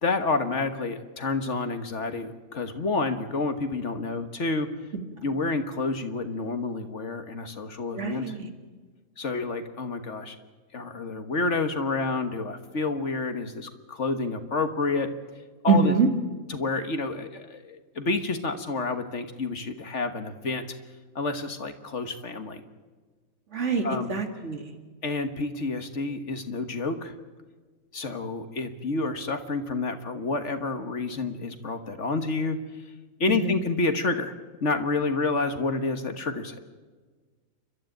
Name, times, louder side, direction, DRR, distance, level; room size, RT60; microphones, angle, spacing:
voice 1, 0.0-4.7 5.2-8.4 9.2-10.3 10.7-15.1 15.6-15.9 16.5-20.6 21.1-22.6 23.8-24.1 25.0-27.1 27.9-32.6 33.2-34.3 34.6-36.6, left 3 dB, 55° left, 8 dB, 1.7 m, -29 dB
voice 2, 7.9-8.5 15.7-16.1 23.5-24.6 33.3-33.6, right 5 dB, 55° right, 5 dB, 2.5 m, -24 dB
29.0 x 12.5 x 9.1 m, 1.4 s
omnidirectional pair, 1.5 m